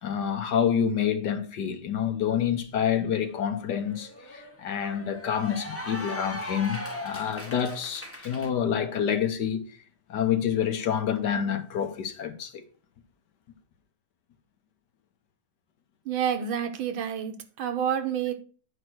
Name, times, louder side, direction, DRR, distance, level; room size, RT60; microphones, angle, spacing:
voice 1, 0.0-9.6 10.1-12.6, left 8 dB, 65° left, 1.5 m, -28 dB
Cheering / Applause, 2.6-2.7 3.1-8.5, left 1 dB, 10° left, 1.0 m, -39 dB
voice 2, 16.1-18.3, right 8 dB, 80° right, 1.8 m, -29 dB
9.8 x 4.9 x 6.1 m
omnidirectional pair, 2.2 m